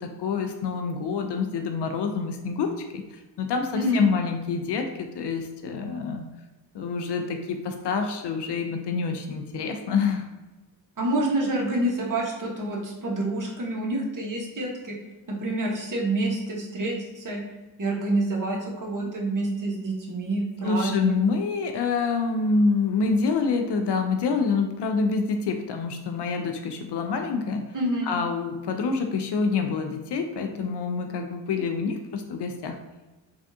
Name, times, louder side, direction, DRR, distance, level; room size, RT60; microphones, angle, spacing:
voice 1, 0.0-6.3 6.7-10.3 19.0-19.1 20.6-27.7 28.0-32.8, left 4 dB, 60° left, 5 dB, 0.5 m, -27 dB
voice 2, 11.0-14.9 15.3-17.4 17.8-21.2 27.7-28.1, right 1 dB, 45° right, -1 dB, 1.0 m, -27 dB
3.5 x 2.4 x 2.6 m, 1.1 s
supercardioid pair, 40°, 46 cm